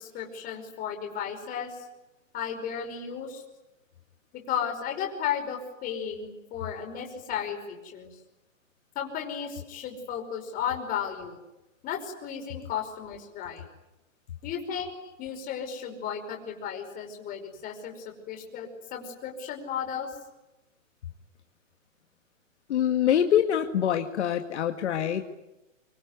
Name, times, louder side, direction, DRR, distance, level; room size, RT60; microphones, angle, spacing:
voice 1, 0.0-1.8 2.3-3.4 4.3-8.2 9.0-11.4 11.8-13.6 14.4-14.9 15.2-20.1, left 8 dB, 20° left, 2 dB, 5.3 m, -34 dB
voice 2, 22.7-25.3, left 10 dB, 60° left, 5 dB, 2.1 m, -25 dB
25.0 x 24.0 x 9.6 m, 0.98 s
hypercardioid pair, 155°, 39 cm